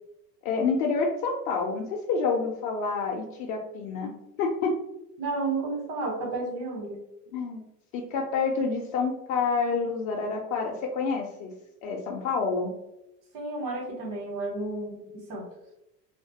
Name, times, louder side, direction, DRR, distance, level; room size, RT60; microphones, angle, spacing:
voice 1, 0.4-4.1 4.4-4.7 7.3-7.6 7.9-11.5 11.8-12.7, left 4 dB, 60° left, 0 dB, 0.5 m, -28 dB
voice 2, 5.2-7.0 13.3-15.0 15.3-15.5, right 3 dB, 75° right, -2 dB, 1.1 m, -31 dB
2.4 x 2.1 x 2.7 m, 0.89 s
hypercardioid pair, 85°, 48 cm